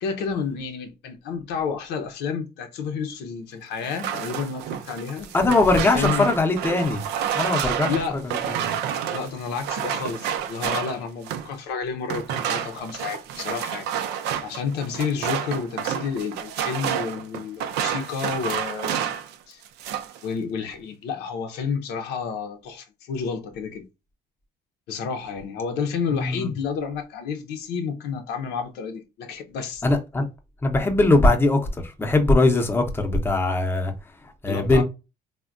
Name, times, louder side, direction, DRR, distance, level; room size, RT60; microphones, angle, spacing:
voice 1, 0.0-6.3 7.9-8.2 9.1-13.9 14.4-19.0 19.5-19.6 20.2-23.9 24.9-29.8 34.5-34.8, left 6 dB, 90° left, 0.6 m, -30 dB
sound 1, 3.8-11.6 12.1-19.3 19.6-20.2, right 9 dB, 85° right, 0.5 m, -29 dB
voice 2, 5.3-7.0 7.3-7.9 8.2-8.8 26.1-26.5 29.8-30.2 30.6-31.6 32.0-33.9 34.4-34.8, left 2 dB, 15° left, 0.6 m, -20 dB
3.4 x 2.1 x 2.4 m
cardioid pair, 110°, 17 cm